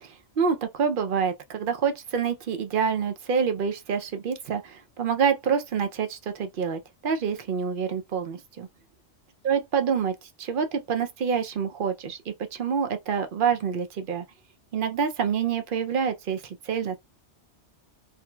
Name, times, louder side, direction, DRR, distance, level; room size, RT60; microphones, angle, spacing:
voice 1, 0.0-8.7 9.4-14.2 14.7-17.0, right 6 dB, 60° right, 0.6 m, -27 dB
2.9 x 2.5 x 2.2 m
omnidirectional pair, 1.2 m